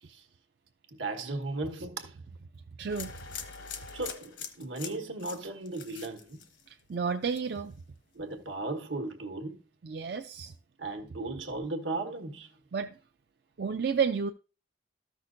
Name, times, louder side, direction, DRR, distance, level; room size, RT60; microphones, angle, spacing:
voice 1, 0.9-2.1 3.9-6.4 8.1-9.6 10.8-12.5, right 2 dB, 80° right, 1.3 m, -36 dB
voice 2, 2.8-3.2 6.7-7.7 9.8-10.5 12.7-13.0 13.6-14.3, right 6 dB, 55° right, 0.4 m, -31 dB
sound 1, 2.9-6.9 7.2-7.7, left 7 dB, 70° left, 1.0 m, -43 dB
13.5 x 6.0 x 2.6 m
head